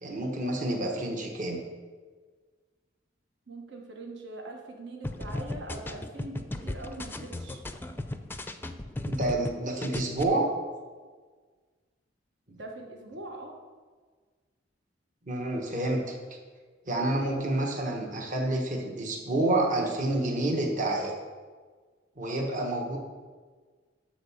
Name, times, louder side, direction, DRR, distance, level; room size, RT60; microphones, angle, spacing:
voice 1, 0.0-1.6 9.1-10.5 12.5-12.6 15.3-16.0 16.9-21.1 22.2-23.0, right 2 dB, 45° right, 0 dB, 1.3 m, -28 dB
voice 2, 3.5-7.6 12.6-13.5 17.2-17.3 22.2-22.5, right 2 dB, 70° right, 1 dB, 1.3 m, -42 dB
sound 1, 5.0-9.5 9.8-10.2, left 1 dB, 10° left, 0.5 m, -36 dB
12.0 x 4.2 x 7.2 m, 1.5 s
head